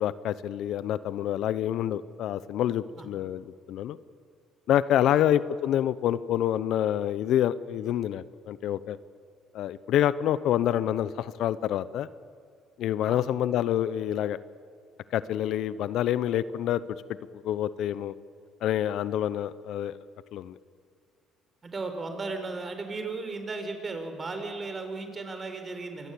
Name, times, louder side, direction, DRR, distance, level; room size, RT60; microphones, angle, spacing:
voice 1, 0.0-4.0 4.7-9.0 9.5-12.1 12.8-14.4 15.1-16.8 17.4-18.1 18.6-19.9 20.3-20.5, left 11 dB, 70° left, 16 dB, 0.8 m, -27 dB
voice 2, 21.6-26.1, right 3 dB, 30° right, 7 dB, 4.6 m, -36 dB
25.5 x 20.0 x 8.5 m, 2.2 s
cardioid pair, 95°, 0 cm